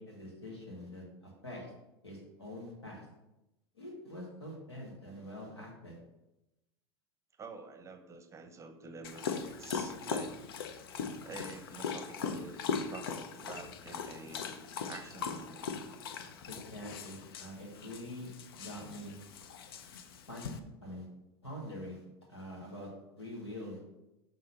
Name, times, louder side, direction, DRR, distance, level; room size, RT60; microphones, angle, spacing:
voice 1, 0.0-1.7 2.0-3.1 3.7-6.0 16.5-19.2 20.3-21.1 21.4-22.0 22.3-22.9 23.2-23.8, left 1 dB, 85° left, -2 dB, 2.1 m, -45 dB
voice 2, 7.4-10.3 11.2-12.6 12.9-15.7, right 3 dB, 20° right, 8 dB, 0.8 m, -48 dB
Dog, 9.0-20.6, left 6 dB, 65° left, 0.6 m, -40 dB
6.5 x 3.8 x 5.8 m, 0.95 s
figure-of-eight pair, 80°, 13 cm